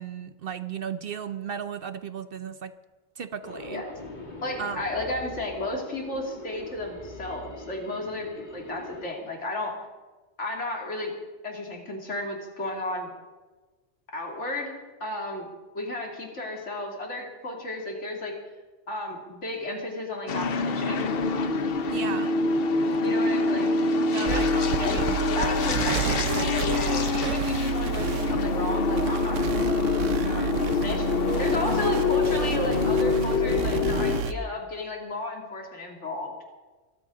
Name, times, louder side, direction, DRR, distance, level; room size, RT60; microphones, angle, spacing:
voice 1, 0.0-2.7 3.2-3.8 4.6-4.8 21.9-22.3 24.1-25.2, right 7 dB, 55° right, 12 dB, 0.8 m, -35 dB
sound 1, 3.4-9.1, left 2 dB, 40° left, 1.8 m, -42 dB
voice 2, 4.4-9.8 10.4-11.1 11.4-13.1 14.1-14.7 15.0-18.3 18.9-21.1 23.0-23.7 24.2-24.5 24.8-25.0 25.3-29.4 30.2-30.5 30.8-31.1 31.4-36.3, left 1 dB, 70° left, 0 dB, 3.0 m, -33 dB
sound 2, 20.3-34.2, left 4 dB, 55° left, 1.0 m, -26 dB
sound 3, 24.3-34.3, right 7 dB, 85° right, 1.1 m, -30 dB
22.5 x 13.5 x 3.8 m, 1.3 s
omnidirectional pair, 1.3 m